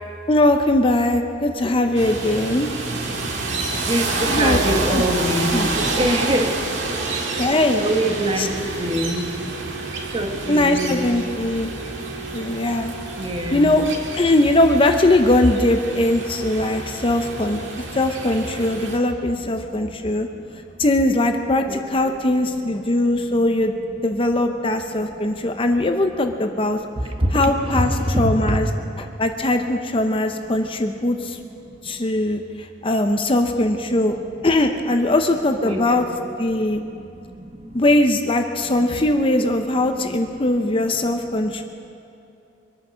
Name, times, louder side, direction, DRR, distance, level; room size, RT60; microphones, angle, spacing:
voice 1, 0.3-2.7 4.3-4.6 4.9-5.0 5.5-5.7 7.1-7.8 8.4-8.5 10.5-11.7 12.3-12.9 13.5-13.8 14.1-17.6 17.9-20.3 20.8-23.7 24.0-26.8 27.3-27.9 28.2-28.7 29.0-31.4 31.8-34.1 34.4-36.1 36.4-36.8 37.7-41.6, left 1 dB, 30° left, 6 dB, 0.7 m, -20 dB
sound 1, 1.9-19.0, right 3 dB, 80° right, 1.9 m, -28 dB
voice 2, 3.9-6.5 7.8-8.5 8.8-9.3 10.1-11.0 13.2-13.7 21.7-22.1 27.2-28.5 35.6-36.0, right 1 dB, 30° right, 3 dB, 1.4 m, -23 dB
24.0 x 9.2 x 6.3 m, 2.7 s
head